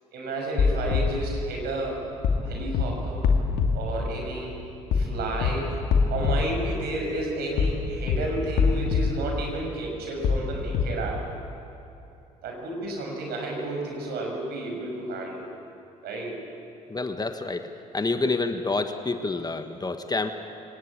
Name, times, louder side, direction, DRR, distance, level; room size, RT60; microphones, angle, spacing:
voice 1, 0.1-2.0 2.4-3.2 3.7-4.5 4.9-5.8 6.1-11.2 12.4-15.5 16.0-16.4, right 2 dB, 65° right, 1 dB, 6.1 m, -31 dB
sound 1, 0.6-1.0 2.2-2.4 2.7-2.8 3.2-3.7 4.9-5.1 5.4-5.5 5.9-6.3 7.6-7.8 8.1-8.2 8.6-9.0 10.2-10.4 10.7-10.8, left 6 dB, 60° left, 2.5 m, -22 dB
voice 2, 16.9-17.7 17.9-20.3, left 3 dB, 20° left, 7 dB, 1.5 m, -28 dB
23.5 x 19.0 x 8.6 m, 2.8 s
hypercardioid pair, 50°, 18 cm